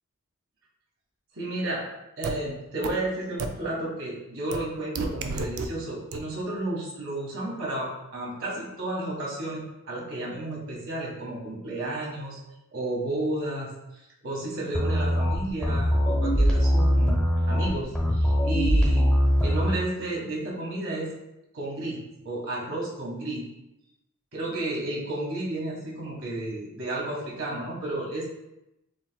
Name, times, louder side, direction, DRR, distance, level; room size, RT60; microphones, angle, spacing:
voice 1, 1.3-1.8 2.2-12.4 12.7-13.7 14.2-17.2 17.5-19.1 19.4-21.1 21.5-22.0 22.2-23.4 24.3-28.2, right 2 dB, 70° right, -3 dB, 1.5 m, -32 dB
sound 1, 2.2-2.3 2.8-2.9 3.4-3.5 4.5-4.6 5.0-5.7 6.1-6.2, right 4 dB, 90° right, 0.4 m, -30 dB
sound 2, 14.7-19.8, equal, 5° left, 0.8 m, -22 dB
7.0 x 3.0 x 2.3 m, 0.89 s
head